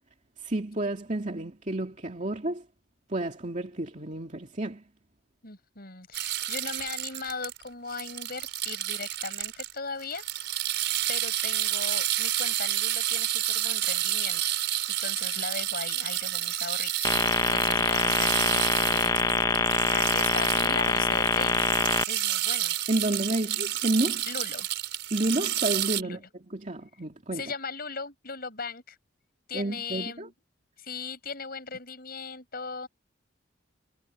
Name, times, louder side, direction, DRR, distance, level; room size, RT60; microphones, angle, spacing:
voice 1, 0.4-2.6 3.1-4.8 22.9-24.3 25.1-26.2 26.5-27.4 29.5-30.3, right 1 dB, 40° right, 2.6 m, -30 dB
voice 2, 5.4-10.2 11.1-14.6 15.0-17.2 17.5-19.3 19.5-21.6 22.1-22.7 24.3-24.7 26.0-26.3 27.3-29.0 29.5-30.3 30.8-32.9, left 4 dB, 50° left, 7.3 m, -38 dB
sound 1, 6.1-9.7 10.0-26.0, right 13 dB, 60° right, 6.3 m, -30 dB
sound 2, 17.0-22.0, left 3 dB, 20° left, 1.8 m, -24 dB
head